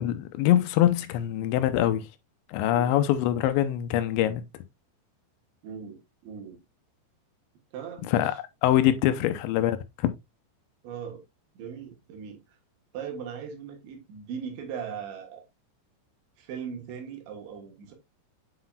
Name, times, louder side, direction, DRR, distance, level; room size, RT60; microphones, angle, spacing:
voice 1, 0.0-2.1 2.5-4.4 8.1-8.3 8.6-10.1, left 12 dB, 90° left, 2.9 m, -24 dB
voice 2, 5.6-6.6 7.7-8.4 8.8-8.9 10.8-11.2 11.6-12.6 12.9-15.5 16.4-17.9, right 7 dB, 80° right, 3.7 m, -39 dB
8.0 x 5.9 x 2.4 m
omnidirectional pair, 5.2 m